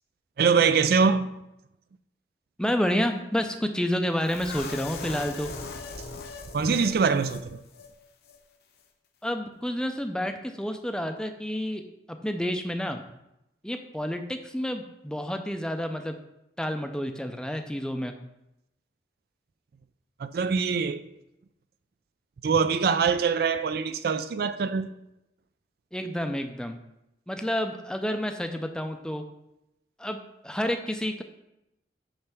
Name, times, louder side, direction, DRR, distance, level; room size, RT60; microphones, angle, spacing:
voice 1, 0.4-1.3 6.5-7.6 20.2-21.0 22.4-24.9, right 5 dB, 55° right, 0.3 m, -23 dB
voice 2, 2.6-5.5 9.2-11.8 12.2-13.0 13.6-16.1 16.6-18.1 25.9-26.8 27.3-29.2 30.0-30.2 30.4-31.2, equal, 5° left, 0.4 m, -29 dB
sound 1, 4.2-7.4 7.7-7.9 8.2-8.4, left 4 dB, 60° left, 0.9 m, -39 dB
8.8 x 3.3 x 6.0 m
head